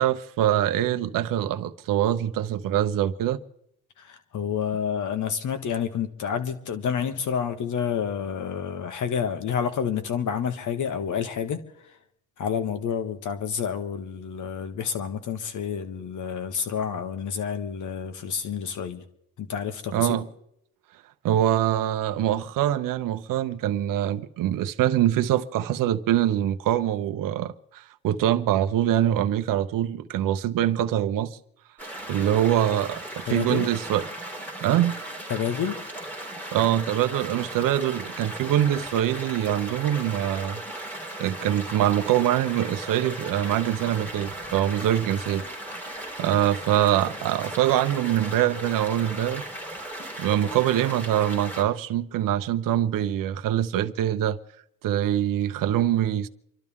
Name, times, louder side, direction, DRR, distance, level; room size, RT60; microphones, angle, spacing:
voice 1, 0.0-3.4 19.9-20.3 21.2-31.4 32.1-34.0 34.6-35.0 36.5-40.6 41.2-45.5 46.2-49.4 50.2-54.4 54.8-56.3, right 11 dB, 65° right, 0.8 m, -24 dB
voice 2, 4.0-12.0 12.4-19.0 19.4-20.2 33.3-33.7 35.3-35.8, left 7 dB, 60° left, 1.6 m, -29 dB
sound 1, 31.8-51.6, right 1 dB, 5° left, 3.1 m, -37 dB
28.0 x 12.0 x 3.7 m
cardioid pair, 115°, 35 cm